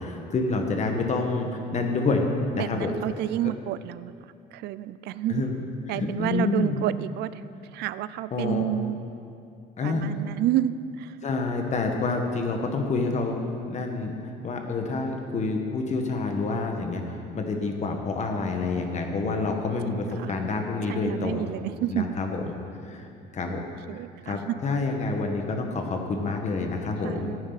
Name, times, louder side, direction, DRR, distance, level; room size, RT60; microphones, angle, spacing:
voice 1, 0.0-1.5 1.7-2.3 2.5-2.9 5.3-5.6 5.9-6.8 8.3-8.6 9.8-10.0 11.2-13.4 13.7-21.4 21.9-22.6 22.8-23.1 23.3-23.6 23.9-27.4, left 3 dB, 45° left, 3 dB, 1.5 m, -28 dB
voice 2, 2.6-5.4 5.9-7.4 7.7-9.0 9.8-11.2 19.2-19.4 19.8-20.3 20.9-22.0 23.5-23.6 23.9-24.5 27.0-27.4, right 13 dB, 80° right, 16 dB, 0.4 m, -30 dB
14.5 x 9.5 x 4.1 m, 2.5 s
cardioid pair, 110°, 17 cm